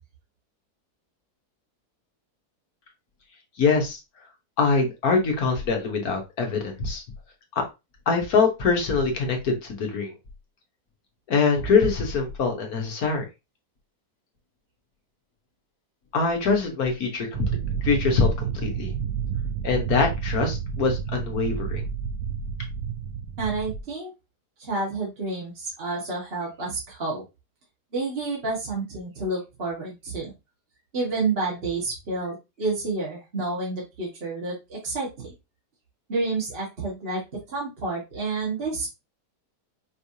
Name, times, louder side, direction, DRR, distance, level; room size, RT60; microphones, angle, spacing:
voice 1, 3.6-4.0 4.6-7.0 7.5-7.6 8.1-10.1 11.3-13.2 16.1-17.5 17.8-18.3 18.6-18.9 19.6-21.8, left 4 dB, 65° left, 3 dB, 1.5 m, -23 dB
sound 1, 17.3-23.8, right 7 dB, 70° right, 1.1 m, -30 dB
voice 2, 23.4-24.1 24.6-27.2 27.9-30.3 30.9-35.3 36.1-37.2 37.5-38.9, right 3 dB, 40° right, -4 dB, 1.6 m, -29 dB
5.5 x 3.3 x 2.7 m, 0.24 s
omnidirectional pair, 1.8 m